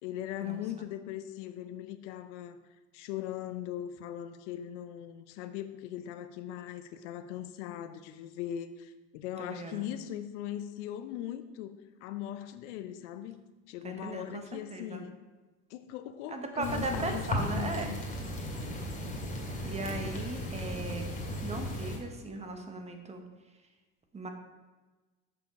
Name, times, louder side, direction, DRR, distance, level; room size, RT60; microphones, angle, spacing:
voice 1, 0.0-2.6 2.9-13.4 13.7-15.2 15.7-18.0, left 11 dB, 90° left, 10 dB, 0.7 m, -39 dB
voice 2, 9.4-9.9 13.8-15.0 16.3-18.0 19.6-21.1 21.4-23.2 24.1-24.3, right 3 dB, 20° right, 5 dB, 1.0 m, -38 dB
sound 1, 16.6-22.0, left 1 dB, 20° left, 2.1 m, -35 dB
6.7 x 5.8 x 5.1 m, 1.2 s
supercardioid pair, 120°, 34 cm